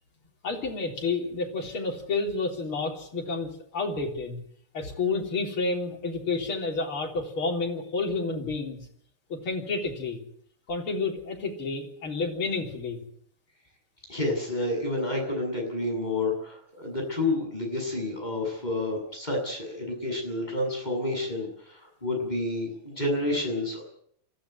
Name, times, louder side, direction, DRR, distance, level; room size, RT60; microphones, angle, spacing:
voice 1, 0.4-4.4 4.7-8.9 9.3-10.2 10.7-13.0, left 3 dB, 75° left, 0 dB, 4.6 m, -30 dB
voice 2, 14.1-23.8, left 2 dB, 20° left, 1 dB, 7.8 m, -29 dB
24.5 x 15.0 x 9.5 m, 0.67 s
omnidirectional pair, 2.4 m